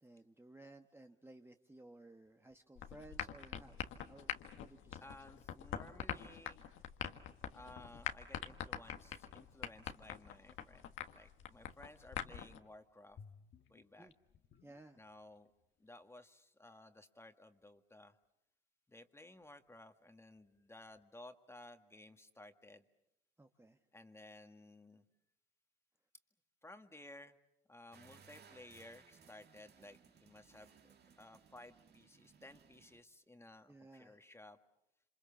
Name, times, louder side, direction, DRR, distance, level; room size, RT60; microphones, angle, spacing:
voice 1, 0.0-3.8 4.1-5.1 14.0-14.1 14.6-15.0 23.4-23.8 33.7-34.2, right 2 dB, 10° right, 5 dB, 1.2 m, -58 dB
sound 1, 2.8-12.6, left 10 dB, 85° left, 1.5 m, -45 dB
voice 2, 5.0-6.6 7.5-13.2 13.7-14.1 14.9-15.5 15.8-18.2 18.9-22.9 23.9-25.0 26.6-27.4 27.7-34.6, left 2 dB, 15° left, 7 dB, 1.8 m, -57 dB
sound 2, 11.4-11.5 11.9-12.7 13.1-15.4 15.6-15.7, left 6 dB, 65° left, 1.5 m, -60 dB
sound 3, 27.9-33.0, right 6 dB, 55° right, 2.2 m, -63 dB
27.5 x 26.5 x 7.2 m, 0.81 s
cardioid pair, 90°, 20 cm